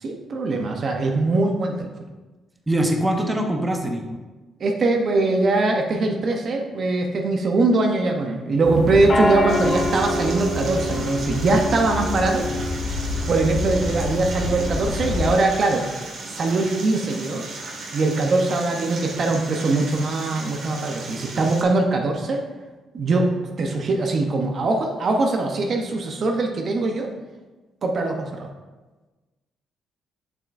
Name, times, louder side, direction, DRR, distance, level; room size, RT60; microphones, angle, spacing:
voice 1, 0.0-1.9 4.6-12.4 13.3-15.8 16.2-17.4 17.9-22.4 22.9-23.3 23.6-27.1 27.8-28.5, right 3 dB, 50° right, 3 dB, 0.7 m, -22 dB
voice 2, 2.7-4.0, right 1 dB, 15° right, 3 dB, 0.8 m, -22 dB
sound 1, 8.6-15.4, left 2 dB, 40° left, 0.8 m, -26 dB
sound 2, 9.5-21.6, right 3 dB, 70° right, 1.4 m, -36 dB
7.1 x 5.7 x 2.5 m, 1.2 s
cardioid pair, 90°, 0 cm